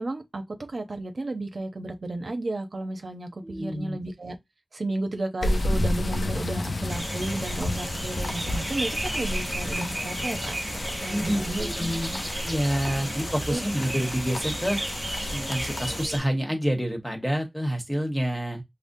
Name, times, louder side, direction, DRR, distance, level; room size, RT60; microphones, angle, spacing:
voice 1, 0.0-4.4 4.7-10.6 11.0-11.7 12.1-12.2 13.5-13.6, right 2 dB, 85° right, 0.6 m, -33 dB
voice 2, 3.4-4.0 11.1-12.1 12.4-14.8 15.3-18.6, equal, 5° left, 1.2 m, -28 dB
sound 1, 5.4-16.1, left 1 dB, 85° left, 0.5 m, -31 dB
sound 2, 6.9-16.2, right 1 dB, 30° right, 1.0 m, -34 dB
5.0 x 2.0 x 2.6 m
wide cardioid pair, 65°, 0 cm